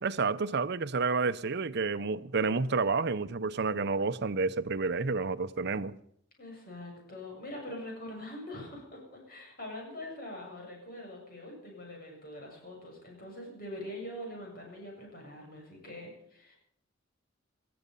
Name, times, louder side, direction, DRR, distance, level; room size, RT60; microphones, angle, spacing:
voice 1, 0.0-5.9, right 4 dB, 60° right, 0.7 m, -30 dB
voice 2, 6.4-16.6, left 1 dB, 50° left, 7.4 m, -43 dB
19.0 x 13.5 x 5.5 m
head